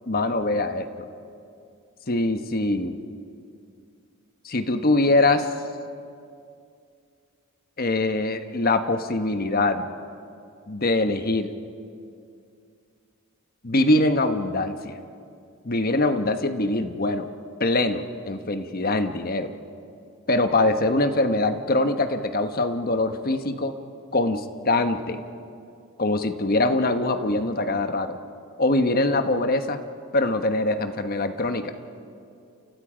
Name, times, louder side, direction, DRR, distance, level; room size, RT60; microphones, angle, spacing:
voice 1, 0.1-1.1 2.1-2.9 4.4-5.5 7.8-9.8 10.7-11.5 13.6-15.0 15.6-17.3 17.6-19.5 20.3-23.7 24.1-25.2 26.0-28.2 28.6-29.8 30.1-31.7, left 2 dB, 40° left, 8 dB, 1.1 m, -23 dB
30.0 x 29.0 x 5.1 m, 2.4 s
head